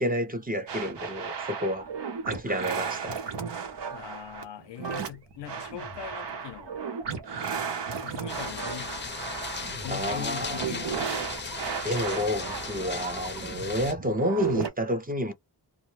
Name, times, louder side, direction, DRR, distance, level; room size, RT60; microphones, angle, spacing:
voice 1, 0.0-1.9 2.3-3.2 9.9-11.1 11.8-15.3, equal, 20° right, 0.5 m, -30 dB
sound 1, 0.7-14.7, right 6 dB, 80° right, 0.8 m, -35 dB
voice 2, 3.9-6.8 7.9-9.3 9.8-11.2, left 11 dB, 85° left, 0.5 m, -41 dB
sound 2, 8.3-13.9, left 4 dB, 25° left, 0.5 m, -37 dB
2.2 x 2.1 x 3.0 m
wide cardioid pair, 85°, 41 cm